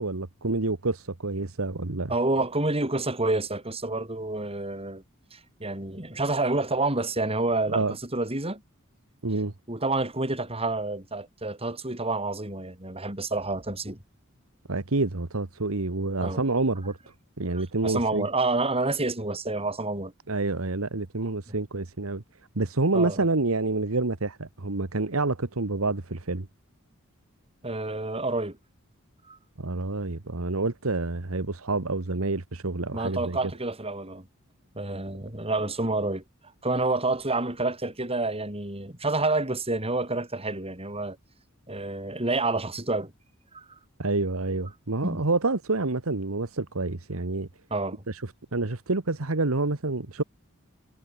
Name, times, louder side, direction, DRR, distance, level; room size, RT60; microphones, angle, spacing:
voice 1, 0.0-2.1 7.7-7.9 9.2-9.5 14.7-17.0 17.4-18.3 20.3-22.2 22.5-26.5 29.6-33.4 44.0-47.5 48.1-48.2 48.5-50.2, right 3 dB, 80° right, 1.4 m, -28 dB
voice 2, 2.1-5.0 5.3-8.6 9.7-14.0 16.2-16.4 17.5-20.1 21.5-21.6 22.9-23.3 27.6-28.6 29.3-29.4 32.9-34.3 34.7-36.2 36.6-41.2 41.7-43.1 43.5-43.7 45.0-45.3 47.7-48.0, right 2 dB, 30° right, 7.2 m, -28 dB
head